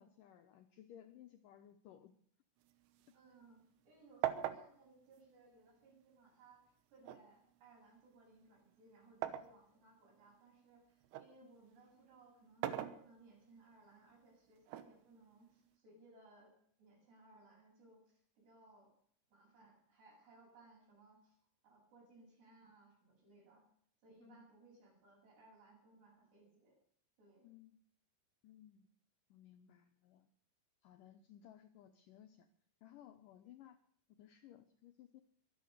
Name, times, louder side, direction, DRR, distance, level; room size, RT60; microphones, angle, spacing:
voice 1, 0.0-2.2 11.4-11.5 24.2-24.4 27.4-27.8 28.4-28.9 29.3-30.3 30.8-32.5 32.8-33.8 34.2-35.2, left 11 dB, 85° left, 7 dB, 1.9 m, -59 dB
sound 1, 2.6-3.9 4.2-6.2 7.1-9.6 10.1-11.4 12.4-13.6 14.7-15.7, right 12 dB, 90° right, 3.2 m, -43 dB
voice 2, 3.1-18.9 19.3-21.4 21.6-23.6 24.0-26.7 27.2-27.5, right 3 dB, 75° right, -2 dB, 9.6 m, -64 dB
23.5 x 8.5 x 6.6 m, 0.62 s
omnidirectional pair, 4.9 m